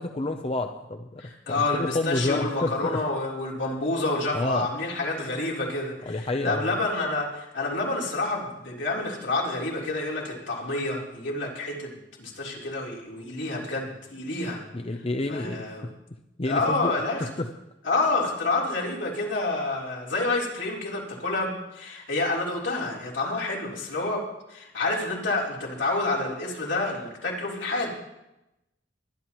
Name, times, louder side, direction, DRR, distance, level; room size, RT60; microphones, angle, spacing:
voice 1, 0.0-1.2 1.5-3.0 4.3-4.7 6.0-6.8 14.7-15.9 16.4-16.9 17.4-17.5, left 2 dB, 30° left, 6 dB, 0.6 m, -29 dB
voice 2, 1.2-14.6 15.3-15.9 16.5-17.3 17.8-24.2 24.5-27.9, left 2 dB, 80° left, -4 dB, 3.6 m, -28 dB
22.0 x 11.0 x 3.0 m, 0.91 s
head